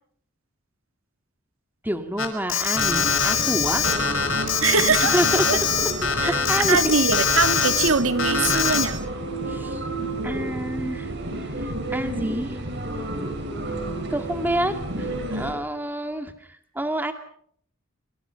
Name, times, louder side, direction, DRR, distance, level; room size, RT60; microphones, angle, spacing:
voice 1, 1.8-3.9 5.1-5.5 6.2-7.0 9.5-9.8 10.2-11.1 11.4-12.6 14.1-17.1, right 1 dB, 10° right, 7 dB, 2.3 m, -28 dB
Alarm, 2.2-7.9 8.2-8.8, left 6 dB, 75° left, 5.7 m, -23 dB
sound 1, 2.7-15.5, right 2 dB, 55° right, 6.7 m, -31 dB
voice 2, 4.6-5.1 5.5-5.6 6.2-6.3 6.7-8.9, right 4 dB, 80° right, 10 dB, 2.1 m, -22 dB
28.0 x 26.0 x 5.9 m, 0.66 s
head